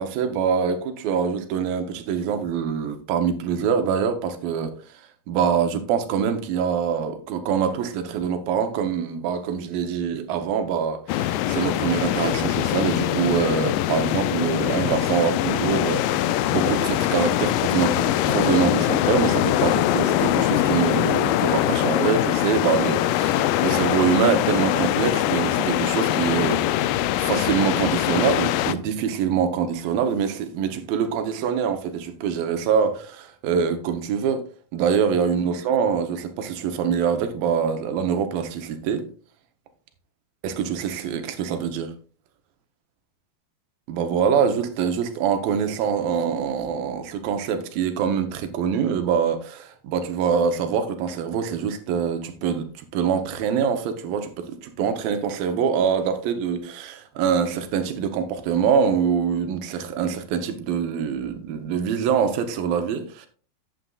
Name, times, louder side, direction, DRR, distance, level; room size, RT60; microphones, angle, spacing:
voice 1, 0.0-4.7 5.3-34.4 34.7-39.1 40.4-41.9 43.9-63.3, right 7 dB, 85° right, 2.7 m, -24 dB
Pacific Ocean, 11.1-28.7, left 13 dB, 85° left, 2.2 m, -22 dB
11.5 x 8.2 x 2.4 m
omnidirectional pair, 4.0 m